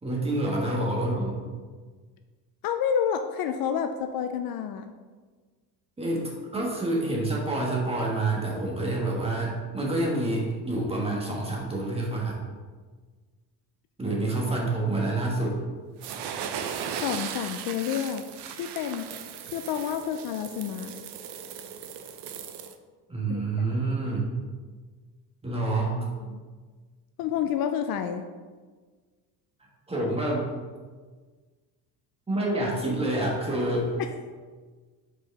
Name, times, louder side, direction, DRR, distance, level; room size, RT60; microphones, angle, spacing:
voice 1, 0.0-1.4 6.0-12.4 14.0-15.6 23.1-24.3 25.4-26.0 29.9-30.5 32.3-34.0, right 2 dB, 15° right, -2 dB, 1.4 m, -27 dB
voice 2, 2.6-4.9 17.0-18.2 18.6-19.1 19.5-21.0 23.3-23.4 23.7-23.8 26.0-26.4 27.2-28.3 34.0-34.1, left 8 dB, 60° left, 7 dB, 0.5 m, -29 dB
sound 1, 16.0-22.7, right 8 dB, 70° right, 0.6 m, -37 dB
5.0 x 4.7 x 4.6 m, 1.4 s
cardioid pair, 135°, 42 cm